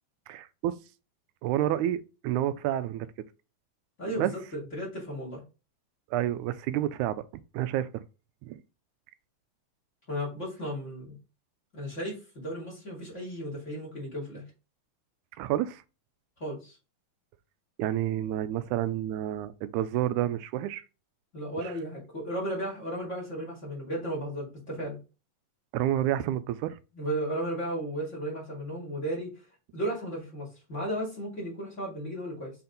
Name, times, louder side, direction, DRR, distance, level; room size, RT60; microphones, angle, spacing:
voice 1, 0.3-0.8 1.4-3.1 4.2-4.3 6.1-7.2 7.5-8.0 8.4-8.6 15.4-15.8 17.8-20.8 25.7-26.8, right 12 dB, 90° right, 2.0 m, -29 dB
voice 2, 4.0-5.4 10.1-11.2 11.7-14.4 16.4-16.8 21.3-25.0 26.9-29.3 29.7-32.5, right 1 dB, 25° left, 3.0 m, -34 dB
6.3 x 4.3 x 4.0 m
omnidirectional pair, 3.4 m